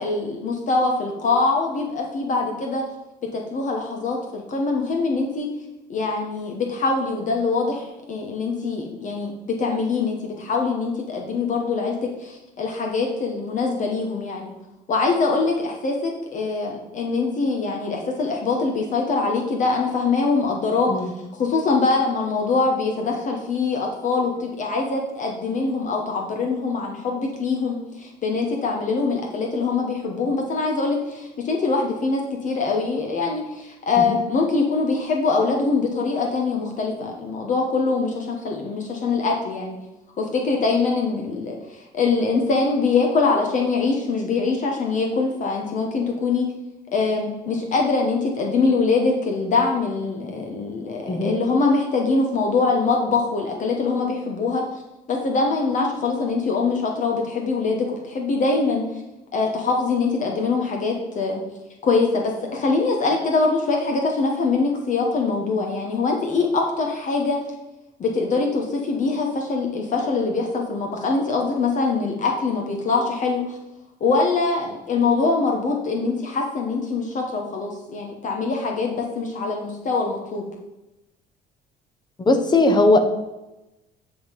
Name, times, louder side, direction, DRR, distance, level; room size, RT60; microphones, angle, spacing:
voice 1, 0.0-2.8 3.3-5.5 5.9-14.5 14.9-21.1 21.4-39.8 40.2-46.5 46.9-54.6 55.1-58.8 59.3-61.4 61.8-67.4 68.0-73.6 74.0-80.5, left 4 dB, 50° left, 1 dB, 1.2 m, -23 dB
voice 2, 82.2-83.0, left 2 dB, 25° left, 7 dB, 1.1 m, -18 dB
10.0 x 3.8 x 5.2 m, 0.99 s
cardioid pair, 110°, 17 cm